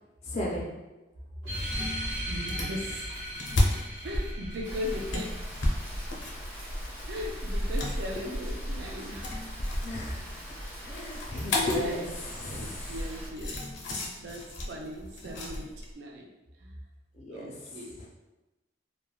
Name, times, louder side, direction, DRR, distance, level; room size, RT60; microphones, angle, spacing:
voice 1, 0.2-0.7 9.8-10.4 10.8-12.9 17.2-18.1, left 1 dB, 35° left, -3 dB, 0.4 m, -35 dB
sound 1, 1.4-6.5, equal, 85° right, 0.9 m, -38 dB
sound 2, 1.5-15.9, left 1 dB, 85° left, 0.6 m, -34 dB
voice 2, 2.3-3.1 4.0-5.4 7.1-9.3 11.7-12.0 12.4-13.6 14.2-16.3 16.6-16.8 17.3-17.9, equal, 65° right, -1 dB, 0.4 m, -38 dB
Rain, 4.6-13.3, equal, 10° right, 1.0 m, -38 dB
3.1 x 2.1 x 2.3 m, 1.0 s
head